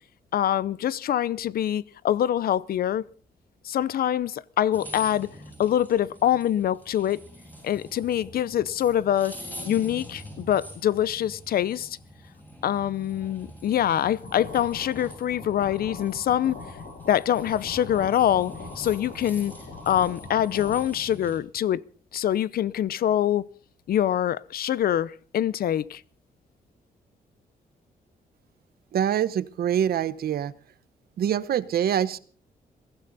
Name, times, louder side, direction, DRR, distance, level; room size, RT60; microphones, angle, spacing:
voice 1, 0.3-3.0 3.6-5.3 5.6-7.2 7.6-9.4 9.6-12.0 12.6-16.6 17.1-19.5 19.9-21.8 22.1-23.5 23.9-26.0, left 11 dB, 70° left, 0.7 m, -24 dB
sound 1, 4.7-21.4, equal, 10° left, 7.0 m, -45 dB
sound 2, 14.2-20.8, left 3 dB, 90° left, 7.4 m, -42 dB
voice 2, 28.9-30.5 31.2-32.2, right 9 dB, 75° right, 1.0 m, -25 dB
22.0 x 15.5 x 4.1 m
wide cardioid pair, 135°, 16 cm